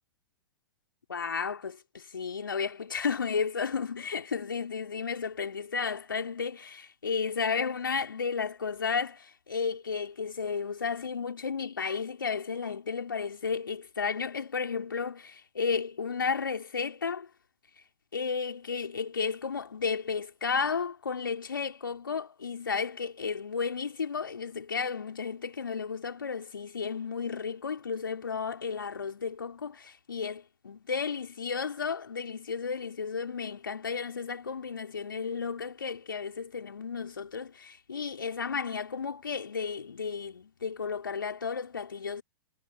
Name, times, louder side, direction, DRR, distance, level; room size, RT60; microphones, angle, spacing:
voice 1, 1.1-17.3 18.1-42.2, left 5 dB, 70° left, 3.0 m, -33 dB
figure-of-eight pair, 105°, 12 cm